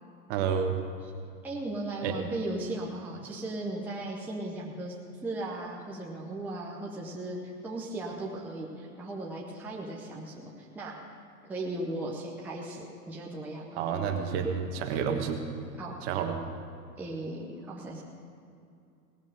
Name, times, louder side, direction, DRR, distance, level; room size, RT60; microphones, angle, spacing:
voice 1, 0.3-0.8 2.0-2.2 13.7-15.4 16.0-16.4, right 7 dB, 40° right, 5 dB, 1.4 m, -29 dB
voice 2, 1.4-4.9 5.2-10.9 11.5-13.7 15.8-16.0 17.0-18.0, right 2 dB, 5° right, -3 dB, 0.8 m, -37 dB
18.0 x 7.2 x 6.6 m, 2.5 s
hypercardioid pair, 135°, 49 cm